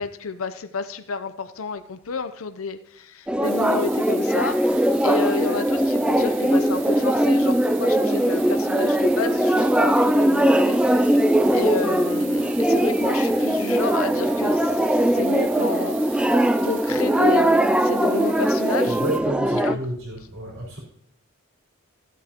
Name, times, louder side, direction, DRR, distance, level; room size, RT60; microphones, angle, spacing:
voice 1, 0.0-11.2 11.5-16.3 16.6-19.0 19.5-19.8, left 5 dB, 90° left, 0.7 m, -31 dB
sound 1, 3.3-19.7, right 1 dB, 5° right, 0.3 m, -20 dB
sound 2, 3.4-19.2, right 9 dB, 65° right, 1.2 m, -42 dB
voice 2, 18.9-20.8, right 1 dB, 80° right, 4.3 m, -30 dB
15.5 x 8.2 x 2.9 m
head